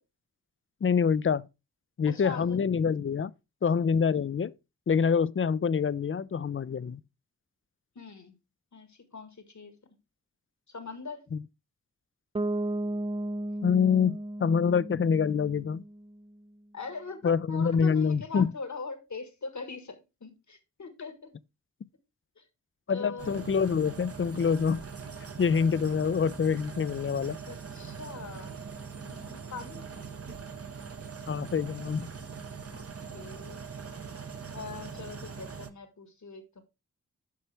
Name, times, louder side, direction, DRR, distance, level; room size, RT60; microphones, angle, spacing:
voice 1, 0.8-1.5 2.0-3.3 3.6-4.5 4.9-7.0 11.3-11.4 13.6-15.8 17.2-18.5 22.9-24.8 25.4-27.4 31.3-32.1, left 6 dB, 45° left, 0.5 m, -26 dB
voice 2, 2.0-2.6 7.9-8.3 8.7-9.8 10.7-11.3 16.7-21.3 22.4-22.5 22.9-23.5 27.5-28.6 29.0-29.9 32.7-32.8 33.1-33.6 34.5-36.6, left 4 dB, 70° left, 1.6 m, -42 dB
Bass guitar, 12.3-16.2, right 1 dB, 20° right, 0.4 m, -34 dB
sound 1, 23.2-35.7, right 5 dB, 50° right, 0.9 m, -42 dB
9.4 x 5.8 x 3.3 m
cardioid pair, 45°, 30 cm